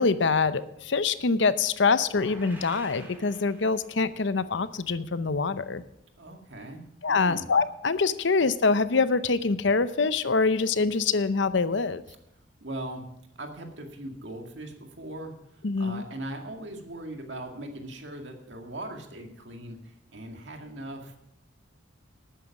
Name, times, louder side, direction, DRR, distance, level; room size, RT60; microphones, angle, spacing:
voice 1, 0.0-5.8 7.0-12.0 15.6-16.0, left 4 dB, 65° left, 14 dB, 0.7 m, -25 dB
sound 1, 2.0-4.2, right 1 dB, 10° right, 3.2 m, -48 dB
voice 2, 6.2-7.5 12.6-13.1 13.4-15.3 15.8-19.8 20.1-21.2, right 1 dB, 65° right, 4 dB, 2.0 m, -39 dB
12.5 x 9.3 x 5.9 m, 0.82 s
head